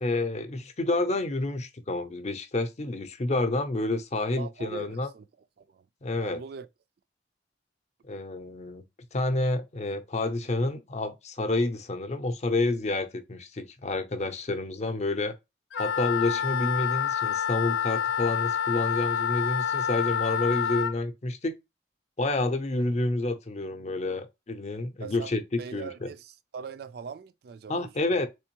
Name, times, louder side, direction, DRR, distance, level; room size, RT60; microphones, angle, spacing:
voice 1, 0.0-5.1 6.0-6.4 8.1-8.8 9.1-15.3 15.8-21.5 22.2-26.1 27.7-28.3, left 2 dB, 40° left, 0.6 m, -29 dB
voice 2, 4.4-5.2 5.6-5.8 6.2-6.7 25.0-25.3 25.6-28.3, right 6 dB, 60° right, 0.3 m, -41 dB
Wind instrument woodwind instrument, 15.7-20.9, left 8 dB, 85° left, 0.3 m, -28 dB
3.5 x 3.4 x 2.9 m
head